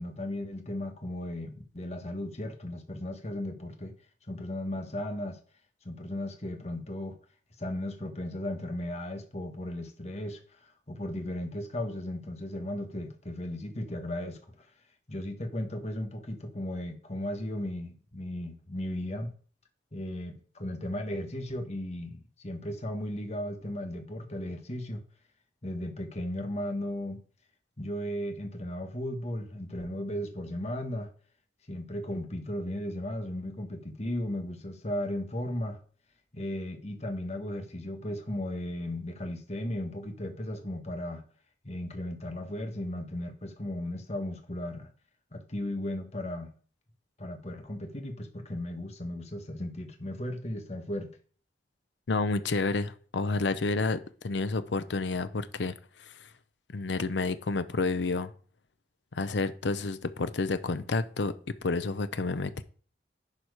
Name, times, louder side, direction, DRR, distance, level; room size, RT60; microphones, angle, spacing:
voice 1, 0.0-3.9 4.3-5.4 5.8-7.2 7.6-14.7 15.1-19.3 19.9-25.0 25.6-27.2 27.8-31.1 31.7-35.8 36.3-41.2 41.6-44.9 45.3-46.5 47.2-51.1, left 1 dB, 40° left, 1.5 m, -36 dB
voice 2, 52.1-55.7 56.0-56.3 56.7-58.3 59.1-61.3 61.6-62.6, left 3 dB, 85° left, 0.7 m, -30 dB
10.5 x 4.6 x 4.9 m
head